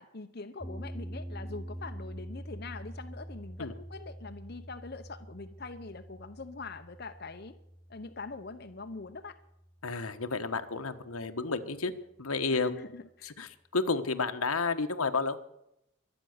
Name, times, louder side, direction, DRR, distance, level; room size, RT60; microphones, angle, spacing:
voice 1, 0.0-7.5 7.9-9.4 12.5-13.3, left 3 dB, 45° left, 6 dB, 0.8 m, -43 dB
sound 1, 0.6-10.8, equal, 10° left, 0.6 m, -45 dB
voice 2, 9.8-11.9 12.2-12.7 13.2-15.4, left 4 dB, 85° left, 8 dB, 1.3 m, -31 dB
24.0 x 9.1 x 6.6 m, 0.82 s
head